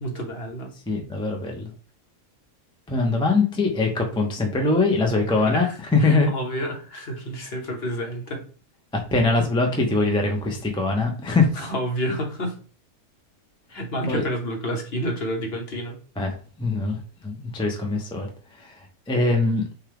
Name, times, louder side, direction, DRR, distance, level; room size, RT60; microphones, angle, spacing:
voice 1, 0.0-0.7 5.4-8.4 11.5-12.5 13.7-16.0, equal, 45° left, 2 dB, 1.2 m, -29 dB
voice 2, 0.9-1.7 2.9-6.3 8.9-11.5 14.1-14.2 16.2-17.0 17.2-18.3 18.6-18.7 19.1-19.7, left 3 dB, 5° left, 2 dB, 0.4 m, -22 dB
6.2 x 2.4 x 3.5 m, 0.39 s
omnidirectional pair, 1.6 m